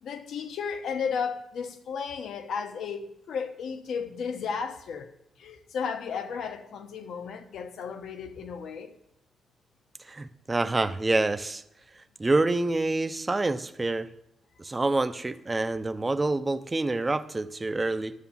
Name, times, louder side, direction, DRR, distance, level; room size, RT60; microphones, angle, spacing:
voice 1, 0.0-5.1 5.4-9.0, left 6 dB, 75° left, 1.0 m, -34 dB
voice 2, 10.0-11.6 12.2-14.1 14.6-18.1, right 2 dB, 20° right, 0.5 m, -27 dB
11.5 x 7.0 x 7.2 m
cardioid pair, 120°, 0 cm